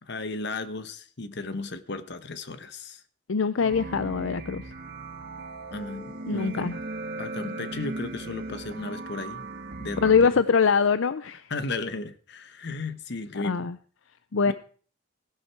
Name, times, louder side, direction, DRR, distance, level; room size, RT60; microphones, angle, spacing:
voice 1, 0.0-3.0 5.7-6.8 7.2-9.4 9.8-10.4 11.5-13.7 14.5-14.6, left 3 dB, 60° left, 12 dB, 1.1 m, -35 dB
voice 2, 3.3-4.6 6.3-6.8 10.0-11.5 13.4-13.8 14.3-14.5, left 5 dB, 75° left, 13 dB, 0.6 m, -23 dB
sound 1, 3.6-10.3, right 2 dB, 50° right, 2.2 m, -37 dB
16.5 x 11.0 x 4.6 m, 0.43 s
head